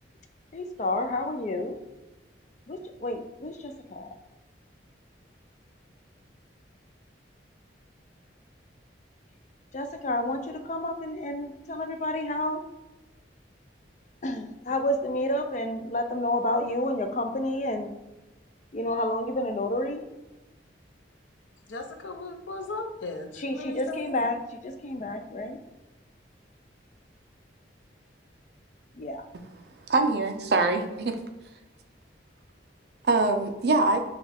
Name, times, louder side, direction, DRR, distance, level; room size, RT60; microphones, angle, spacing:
voice 1, 0.5-1.8 2.7-4.1 9.7-12.6 14.2-17.9 18.7-20.0 23.4-25.6 28.9-29.2, left 1 dB, 40° left, 6 dB, 0.4 m, -30 dB
voice 2, 21.6-24.2, left 3 dB, 85° left, 4 dB, 0.6 m, -37 dB
voice 3, 29.9-31.2 33.1-34.0, right 3 dB, 60° right, 6 dB, 0.5 m, -23 dB
6.3 x 2.3 x 3.4 m, 1.0 s
head